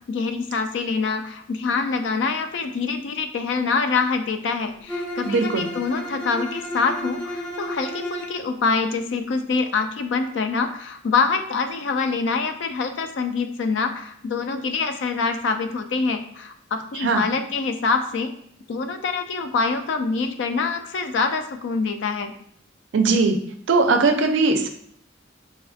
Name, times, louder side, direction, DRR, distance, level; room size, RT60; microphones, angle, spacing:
voice 1, 0.1-18.3 18.7-22.3, left 4 dB, 65° left, 8 dB, 0.3 m, -25 dB
Bowed string instrument, 4.9-8.4, left 1 dB, 10° left, 0.5 m, -32 dB
voice 2, 5.2-5.7 16.9-17.2 22.9-23.4 23.7-24.7, right 3 dB, 65° right, 5 dB, 0.4 m, -19 dB
4.1 x 2.5 x 2.4 m, 0.66 s
head